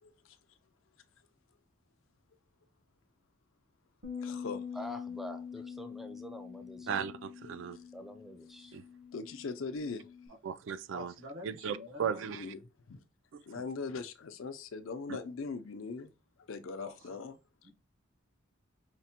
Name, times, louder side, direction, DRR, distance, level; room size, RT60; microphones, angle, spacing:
voice 1, 0.0-0.4 4.2-4.6 7.7-7.8 9.1-10.0 12.3-12.6 12.9-13.0 13.4-16.1 16.5-17.4, left 4 dB, 75° left, 0.5 m, -40 dB
Bass guitar, 4.0-10.3, left 6 dB, 50° right, 0.8 m, -45 dB
voice 2, 4.7-7.0 7.9-8.7, equal, ahead, 0.4 m, -46 dB
voice 3, 6.9-7.8 8.7-8.8 10.4-11.1 11.4-12.5 13.3-13.6 15.1-15.2, right 7 dB, 65° right, 0.3 m, -37 dB
voice 4, 10.9-12.2 16.8-17.2 17.6-17.7, equal, 85° right, 1.0 m, -47 dB
5.1 x 2.1 x 2.8 m
head